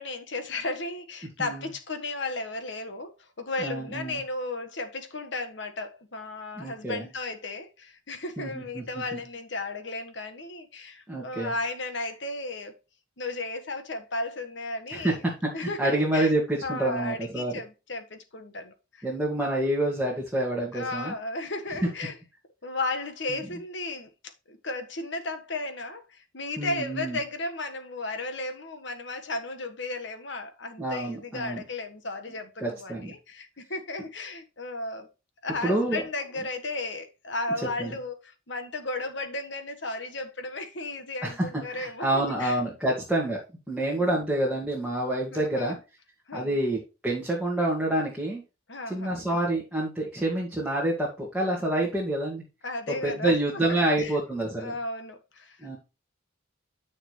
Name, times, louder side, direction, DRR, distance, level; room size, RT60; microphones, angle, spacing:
voice 1, 0.0-12.7 13.2-15.2 15.5-16.3 16.6-19.1 20.7-22.2 22.6-24.1 24.5-35.1 35.4-42.6 43.8-44.1 45.3-45.8 46.3-46.6 48.7-49.2 52.6-53.3 53.7-54.2 54.6-55.6, left 2 dB, 65° left, 1.6 m, -34 dB
voice 2, 3.6-4.2 6.6-7.0 8.4-8.8 9.1-9.2 11.1-11.5 14.9-15.1 15.6-17.5 19.0-21.1 23.3-23.4 26.6-27.2 30.8-31.6 32.6-33.1 35.6-36.0 37.8-37.9 41.2-43.4 43.7-45.8 46.3-48.4 48.9-52.4 52.9-54.7 55.6-55.8, right 1 dB, 5° right, 2.2 m, -28 dB
9.8 x 6.5 x 3.2 m
head